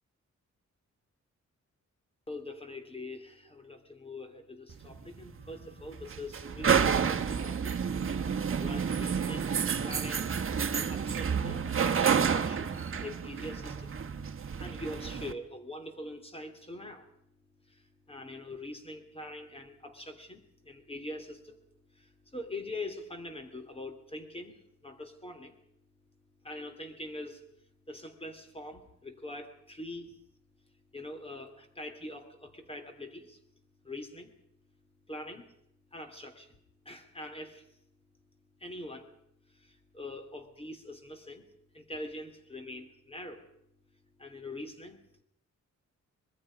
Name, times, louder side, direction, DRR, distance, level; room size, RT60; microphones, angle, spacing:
voice 1, 2.3-7.7 8.6-9.5 9.8-13.9 14.6-17.1 17.7-21.5 22.0-24.6 24.8-25.6 26.4-27.4 27.9-30.1 30.9-33.4 33.8-34.3 35.1-35.4 35.9-36.5 36.8-37.6 38.6-39.1 39.5-41.5 41.7-43.5 44.2-45.2, left 1 dB, 20° left, 7 dB, 2.7 m, -43 dB
sound 1, 4.7-15.3, right 6 dB, 45° right, 1.3 m, -30 dB
25.0 x 21.5 x 5.2 m, 0.72 s
wide cardioid pair, 140°, 30 cm